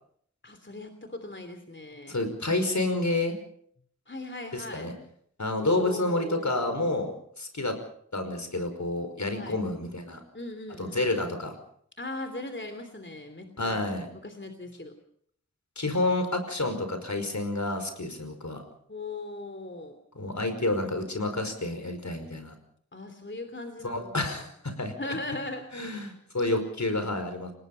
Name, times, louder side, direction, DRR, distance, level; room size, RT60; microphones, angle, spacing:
voice 1, 0.4-2.2 4.1-4.9 5.6-7.0 9.3-9.6 10.3-11.0 12.0-13.8 14.2-14.9 18.9-19.9 22.9-24.4 25.0-25.9, left 2 dB, 40° left, 7 dB, 3.0 m, -39 dB
voice 2, 2.1-3.4 4.5-4.9 5.4-7.1 7.4-7.8 8.1-10.2 10.8-11.6 13.6-14.1 15.8-18.6 20.2-22.5 23.8-24.9 25.7-27.5, left 2 dB, 70° left, 7 dB, 5.4 m, -29 dB
30.0 x 19.0 x 5.6 m, 0.65 s
wide cardioid pair, 60°, 29 cm